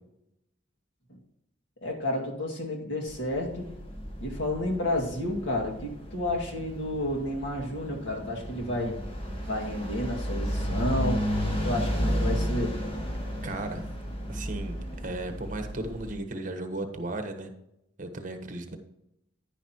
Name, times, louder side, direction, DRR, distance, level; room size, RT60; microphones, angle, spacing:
voice 1, 1.8-3.7 4.2-9.0 9.5-12.8, left 1 dB, 75° left, 0 dB, 2.1 m, -31 dB
sound 1, 3.1-16.2, equal, 30° left, 1.8 m, -33 dB
voice 2, 13.4-13.8 14.3-17.5 18.0-18.8, right 2 dB, 45° right, 6 dB, 1.2 m, -35 dB
10.5 x 10.0 x 3.0 m, 0.83 s
head